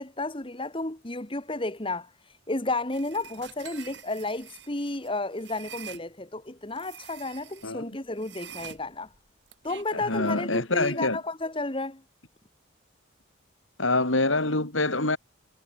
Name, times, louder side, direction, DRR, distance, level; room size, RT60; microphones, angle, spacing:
voice 1, 0.0-2.1 2.5-9.1 9.6-12.0, left 2 dB, 25° left, 1.6 m, -32 dB
sound 1, 2.9-6.0 6.7-7.7 8.2-10.2, right 8 dB, 60° right, 7.4 m, -46 dB
voice 2, 9.9-11.2 13.8-15.2, left 2 dB, 85° left, 5.5 m, -25 dB
head